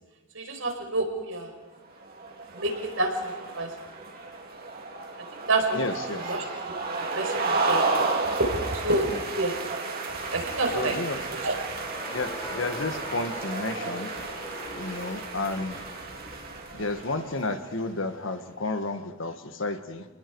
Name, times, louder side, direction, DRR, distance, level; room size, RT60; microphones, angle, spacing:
voice 1, 0.3-1.5 2.5-3.7 5.5-5.8 6.3-6.4 7.1-7.8 8.5-9.5 10.3-10.9 11.3-11.5, right 2 dB, 75° right, 2 dB, 5.1 m, -28 dB
sound 1, 2.0-17.6, right 3 dB, 50° right, 3.2 m, -32 dB
voice 2, 5.7-6.5 9.1-9.2 10.7-11.2 12.1-14.1 14.8-15.8 16.7-20.1, left 3 dB, 65° left, 8 dB, 1.5 m, -32 dB
Crowd, 11.6-16.6, left 2 dB, 30° left, 6.6 m, -41 dB
29.0 x 20.5 x 4.7 m, 1.3 s
head